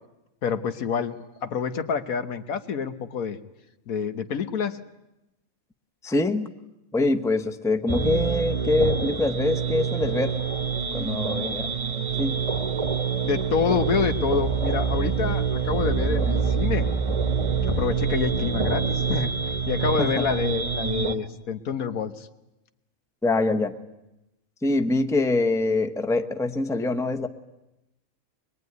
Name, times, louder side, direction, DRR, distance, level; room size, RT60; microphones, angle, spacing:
voice 1, 0.4-1.1 1.4-3.4 3.9-4.8 13.2-16.9 17.7-19.3 19.7-22.3, left 6 dB, 80° left, 9 dB, 1.6 m, -27 dB
voice 2, 6.0-6.5 6.9-10.4 10.9-11.7 12.2-12.4 20.0-20.3 23.2-23.7 24.6-27.3, left 2 dB, 5° left, 8 dB, 0.8 m, -24 dB
sound 1, 7.9-21.2, right 6 dB, 25° right, 1.2 m, -26 dB
23.5 x 22.0 x 9.5 m, 0.94 s
omnidirectional pair, 1.5 m